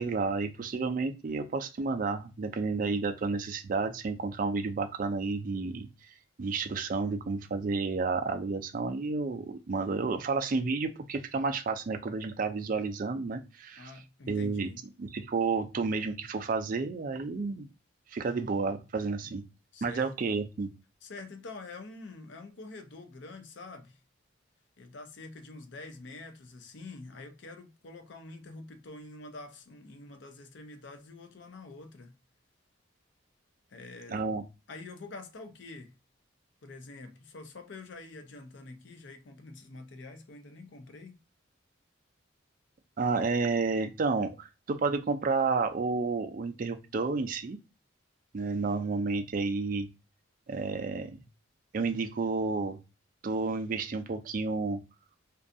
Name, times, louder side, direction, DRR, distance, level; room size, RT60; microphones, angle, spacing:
voice 1, 0.0-13.9 14.3-14.7 15.0-17.7 18.1-19.4 19.8-20.7 34.1-34.4 43.0-47.6 48.3-49.9 50.5-51.2 51.7-52.8 53.2-54.8, right 4 dB, 40° right, 0.3 m, -31 dB
voice 2, 13.8-14.8 19.2-19.3 19.7-20.1 21.0-24.0 24.8-32.1 33.7-34.3 34.7-35.9 36.6-41.2, left 3 dB, 60° left, 0.5 m, -46 dB
2.5 x 2.3 x 2.5 m
head